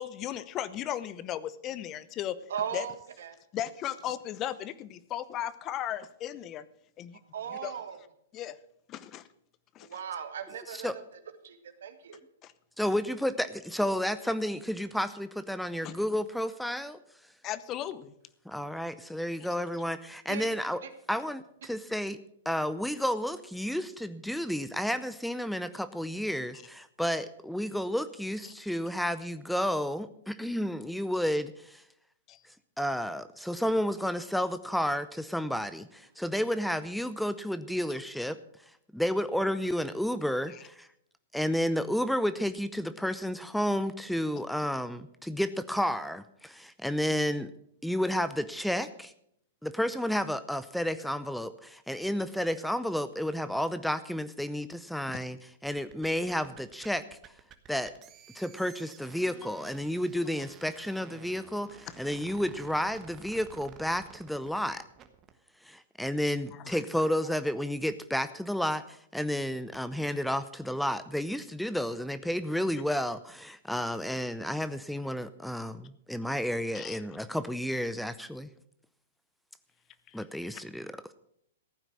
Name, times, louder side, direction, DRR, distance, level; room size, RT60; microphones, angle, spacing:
voice 1, 0.0-2.4 2.7-2.9 3.5-6.6 7.0-7.2 7.5-7.8 8.3-8.6 8.9-9.2 9.7-10.0 12.4-12.5 15.8-15.9 17.4-18.1 32.3-32.4 66.5-66.8 76.7-77.0 80.1-80.2, left 11 dB, 30° left, 16 dB, 0.8 m, -36 dB
voice 2, 2.5-3.3 7.3-8.0 9.8-10.9 11.4-12.2 20.3-20.5 20.8-20.9, right 8 dB, 70° right, 8 dB, 1.8 m, -37 dB
voice 3, 12.8-17.0 18.5-20.8 21.1-22.2 22.5-31.8 32.8-38.4 38.9-40.9 41.3-47.5 47.8-49.1 49.6-57.2 57.7-57.9 58.3-64.8 65.6-78.5 80.1-81.1, equal, ahead, 13 dB, 0.6 m, -31 dB
sound 1, 55.6-65.4, right 8 dB, 30° right, 1.3 m, -52 dB
15.0 x 9.0 x 6.3 m, 0.71 s
hypercardioid pair, 115°, 0 cm